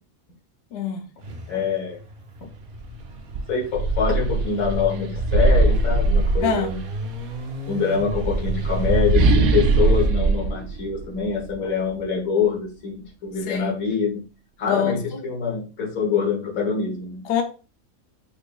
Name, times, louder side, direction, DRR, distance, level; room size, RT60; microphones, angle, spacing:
voice 1, 0.7-1.1 6.4-6.7 13.5-13.7 14.6-15.2 17.2-17.4, left 7 dB, 60° left, 0.7 m, -25 dB
sound 1, 1.2-10.1, equal, 55° right, 0.7 m, -34 dB
voice 2, 1.5-2.0 3.5-6.8 7.7-14.2 14.6-17.2, left 6 dB, 80° left, 1.5 m, -25 dB
sound 2, 2.8-2.9 3.3-7.0 7.9-11.5, right 3 dB, 90° right, 1.0 m, -21 dB
4.5 x 2.9 x 2.3 m
omnidirectional pair, 1.4 m